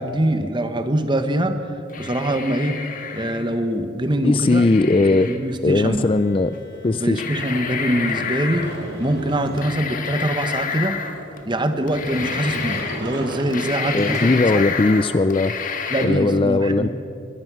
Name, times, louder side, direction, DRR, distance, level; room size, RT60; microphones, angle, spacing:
voice 1, 0.0-1.6 2.0-2.8 3.1-4.6 5.1-6.1 6.9-8.7 9.0-11.0 11.4-14.7 15.9-16.9, right 1 dB, 25° right, 8 dB, 1.3 m, -23 dB
sound 1, 1.9-3.6 4.5-5.4 6.5-6.6 7.1-8.8 9.6-11.4 11.9-13.0 13.3-16.1, left 6 dB, 45° left, 1.7 m, -29 dB
voice 2, 4.2-5.3 5.6-6.6 6.8-7.2 13.9-16.9, left 3 dB, 25° left, 13 dB, 0.4 m, -19 dB
Bowed string instrument, 6.0-10.4, equal, 80° left, 2.8 m, -48 dB
Sliding door, 7.4-14.8, right 1 dB, 60° right, 4.0 m, -36 dB
22.5 x 21.5 x 6.3 m, 2.8 s
head